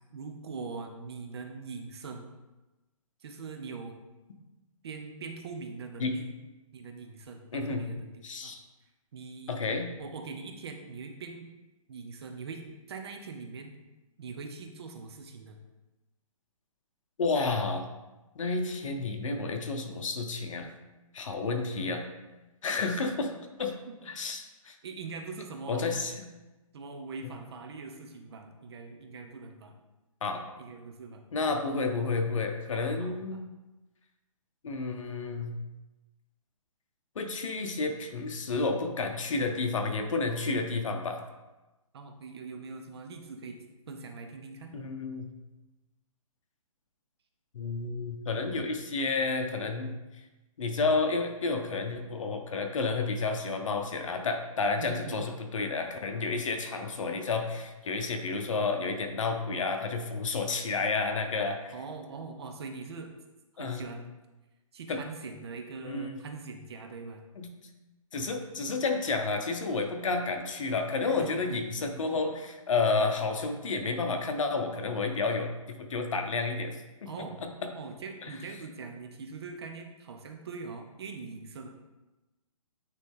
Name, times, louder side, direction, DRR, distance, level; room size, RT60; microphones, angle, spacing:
voice 1, 0.0-2.3 3.2-4.0 4.8-6.3 6.7-8.5 9.1-9.6 10.0-11.4 11.9-12.6 12.9-13.8 14.2-15.6 22.8-23.1 23.9-24.0 24.8-25.9 26.7-29.8 30.6-31.2 32.7-33.4 41.9-43.6 43.9-44.7 54.8-55.3 61.7-63.1 63.6-64.1 64.7-67.2 71.1-71.3 77.1-77.4 77.7-81.7, right 4 dB, 45° right, 4 dB, 0.8 m, -42 dB
voice 2, 7.5-7.8 8.2-8.6 9.5-9.9 17.2-17.9 18.3-20.7 21.1-22.0 22.6-23.3 23.6-23.8 24.0-24.8 25.7-26.1 30.2-30.4 31.3-33.4 34.6-35.5 37.1-41.2 44.7-45.3 47.5-49.9 50.6-61.7 63.6-63.8 64.9-65.0 65.8-66.2 67.4-67.5 68.1-76.8 77.0-77.7, left 3 dB, 60° left, 4 dB, 1.0 m, -31 dB
9.3 x 3.3 x 3.6 m, 1.1 s
hypercardioid pair, 160°, 18 cm